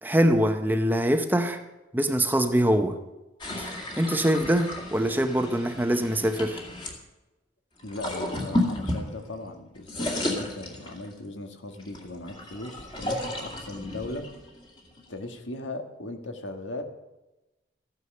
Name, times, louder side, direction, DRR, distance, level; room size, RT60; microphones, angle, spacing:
voice 1, 0.0-1.6 1.9-3.0 3.6-3.7 4.0-6.6, equal, 10° right, 7 dB, 0.7 m, -23 dB
sound 1, 3.4-7.0 7.8-9.5 9.8-11.2 11.8-15.2, left 1 dB, 25° left, 2.1 m, -33 dB
voice 2, 7.8-14.2 15.1-16.8, left 2 dB, 85° left, 6 dB, 1.6 m, -38 dB
14.0 x 9.5 x 6.7 m, 1.0 s
head